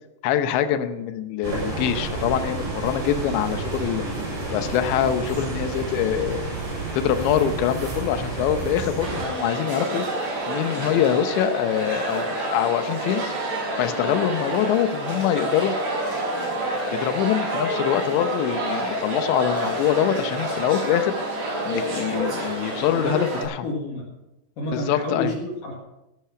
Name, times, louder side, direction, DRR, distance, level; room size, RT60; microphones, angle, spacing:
voice 1, 0.2-4.1 4.5-6.6 6.9-10.1 10.5-13.2 13.8-15.7 16.6-21.1 21.6-23.6 24.7-25.3, left 10 dB, 85° left, 9 dB, 3.2 m, -24 dB
sound 1, 1.4-9.3, right 3 dB, 85° right, 9.4 m, -30 dB
sound 2, 9.0-23.4, right 1 dB, 50° right, 7.7 m, -28 dB
voice 2, 22.9-24.1 24.6-25.8, left 2 dB, 60° left, -1 dB, 3.1 m, -29 dB
16.0 x 11.5 x 5.8 m, 0.93 s
omnidirectional pair, 5.0 m